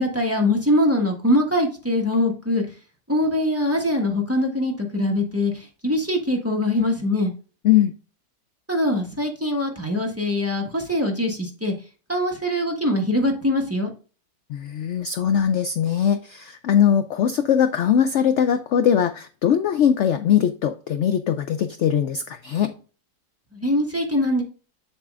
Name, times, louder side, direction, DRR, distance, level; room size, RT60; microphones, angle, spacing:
voice 1, 0.0-2.6 3.1-7.3 8.7-11.7 12.1-13.9 23.5-24.4, left 1 dB, 10° right, 1 dB, 1.2 m, -22 dB
voice 2, 14.5-22.7, left 9 dB, 70° left, 10 dB, 0.6 m, -21 dB
7.4 x 7.2 x 2.5 m, 0.37 s
omnidirectional pair, 1.8 m